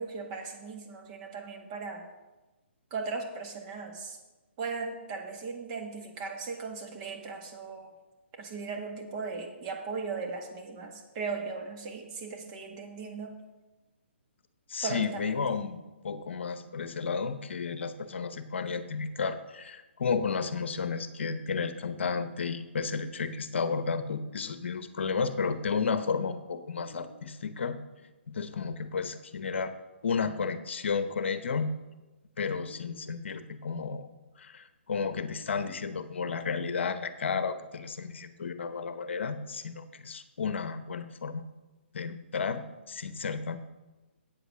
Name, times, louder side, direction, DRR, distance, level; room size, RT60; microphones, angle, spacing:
voice 1, 0.0-2.0 2.9-4.2 4.6-7.9 8.4-13.3 14.8-15.3, right 4 dB, 35° right, 2 dB, 1.8 m, -37 dB
voice 2, 14.7-27.8 28.3-29.7 30.0-31.7 32.4-34.1 34.4-41.4 41.9-43.6, left 5 dB, 70° left, 11 dB, 0.8 m, -32 dB
8.6 x 8.0 x 6.2 m, 1.1 s
hypercardioid pair, 140°, 7 cm